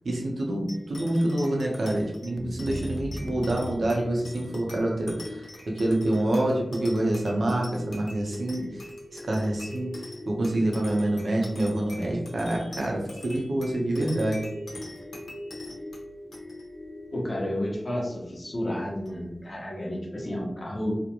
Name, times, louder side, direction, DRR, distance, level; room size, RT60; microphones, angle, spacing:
voice 1, 0.0-5.5 5.8-8.8 9.1-10.0 10.2-14.4, right 1 dB, 85° right, -1 dB, 0.6 m, -27 dB
sound 1, 0.7-19.5, left 1 dB, 85° left, 0.7 m, -42 dB
sound 2, 2.4-4.7, equal, 20° left, 0.4 m, -37 dB
voice 2, 17.1-20.9, left 1 dB, 55° left, -2 dB, 0.7 m, -31 dB
2.4 x 2.1 x 2.8 m, 0.85 s
cardioid pair, 45°, 0 cm